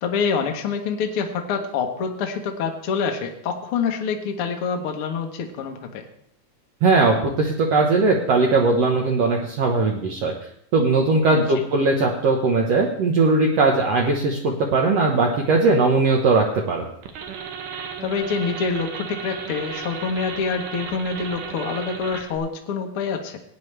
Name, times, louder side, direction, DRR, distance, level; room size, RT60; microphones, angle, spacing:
voice 1, 0.0-6.0 11.3-11.6 18.0-23.4, left 5 dB, 60° left, 3 dB, 1.5 m, -26 dB
voice 2, 6.8-10.3 10.7-16.9, right 3 dB, 65° right, 0 dB, 1.8 m, -19 dB
sound 1, 17.0-22.4, right 6 dB, 85° right, 2.8 m, -34 dB
17.5 x 9.2 x 3.3 m, 0.69 s
omnidirectional pair, 3.8 m